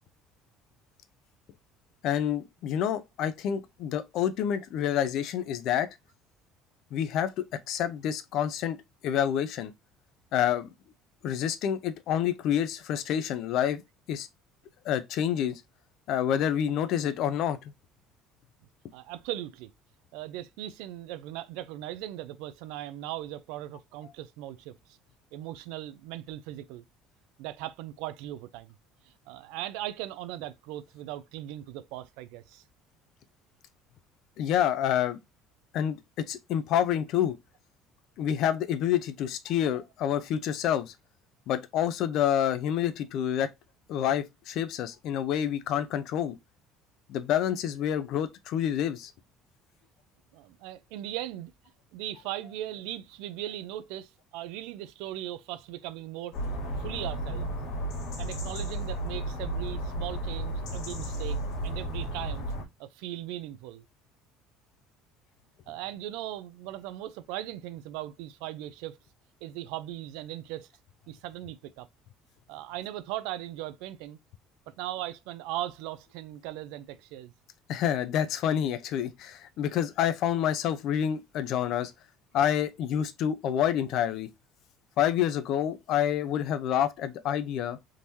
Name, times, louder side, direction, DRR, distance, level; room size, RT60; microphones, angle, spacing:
voice 1, 2.0-5.9 6.9-7.3 7.7-8.8 9.0-9.7 10.3-10.7 11.2-13.8 14.1-14.3 14.8-15.6 16.1-17.6 34.4-35.2 35.7-36.0 36.3-37.3 38.2-40.9 41.5-43.5 43.9-46.4 47.1-49.1 77.7-81.9 82.3-84.3 85.0-87.8, left 10 dB, 60° left, 0.5 m, -28 dB
voice 2, 18.9-19.7 20.1-25.0 25.3-26.8 27.4-28.8 29.0-32.6 50.3-51.5 51.9-56.3 56.8-57.6 58.2-62.5 62.8-63.8 65.7-69.0 69.4-70.7 71.1-71.9 72.5-74.2 74.7-77.3, right 13 dB, 85° right, 0.4 m, -38 dB
sound 1, 56.3-62.6, right 1 dB, 80° left, 1.7 m, -33 dB
3.6 x 3.0 x 2.6 m
cardioid pair, 145°, 0 cm